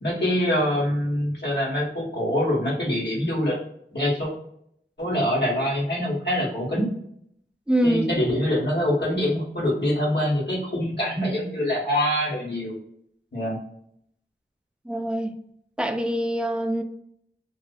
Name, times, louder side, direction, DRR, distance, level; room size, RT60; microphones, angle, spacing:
voice 1, 0.0-3.6 3.9-4.3 5.0-6.9 7.8-12.7 13.3-13.6, equal, 60° left, -5 dB, 1.2 m, -24 dB
voice 2, 7.7-8.0 14.9-15.3 15.8-16.8, right 1 dB, 5° right, 4 dB, 0.4 m, -24 dB
2.6 x 2.4 x 2.2 m, 0.69 s
wide cardioid pair, 45°, 20 cm